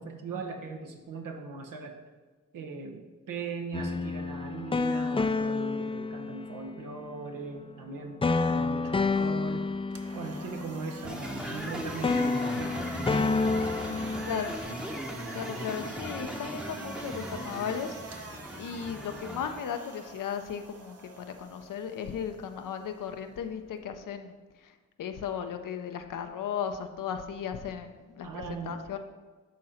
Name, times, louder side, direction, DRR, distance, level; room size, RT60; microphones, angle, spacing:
voice 1, 0.0-2.0 2.5-3.0 3.3-9.6 10.1-13.2 28.2-28.8, right 4 dB, 80° right, 4 dB, 1.0 m, -39 dB
sound 1, 3.7-6.9 8.2-11.7 12.0-14.5, left 3 dB, 15° left, 0.4 m, -29 dB
sound 2, 9.8-23.9, right 3 dB, 45° right, 1.0 m, -46 dB
sound 3, 11.0-19.6, equal, ahead, 0.8 m, -38 dB
voice 2, 14.2-14.5 15.3-18.0 18.6-24.4 24.6-24.7 25.0-29.0, left 7 dB, 75° left, 7 dB, 0.7 m, -36 dB
10.5 x 3.8 x 4.3 m, 1.3 s
supercardioid pair, 50°, 32 cm